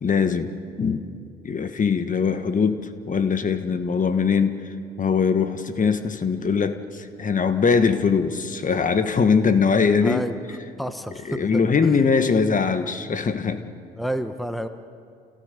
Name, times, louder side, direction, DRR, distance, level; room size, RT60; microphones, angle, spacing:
voice 1, 0.0-0.5 0.8-1.0 1.4-10.2 11.3-13.7, left 5 dB, 40° left, 9 dB, 1.5 m, -22 dB
voice 2, 10.0-10.4 10.8-12.0 13.5-13.7 14.0-14.7, equal, ahead, 9 dB, 1.2 m, -30 dB
28.0 x 16.5 x 6.9 m, 2.3 s
supercardioid pair, 60°, 21 cm